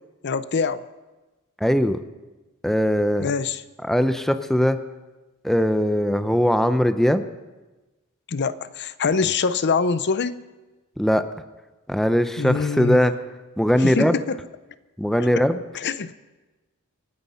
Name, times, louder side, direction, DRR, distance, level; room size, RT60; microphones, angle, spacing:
voice 1, 0.2-0.8 3.2-3.6 8.3-10.3 12.4-13.0 13.8-14.4 15.7-16.1, left 4 dB, 50° left, 14 dB, 0.6 m, -24 dB
voice 2, 1.6-2.0 2.6-3.3 3.8-4.8 5.4-7.2 11.0-11.3 11.9-13.1 13.6-14.2 15.0-15.6, equal, ahead, 10 dB, 0.6 m, -20 dB
25.5 x 9.6 x 5.7 m, 1.2 s
head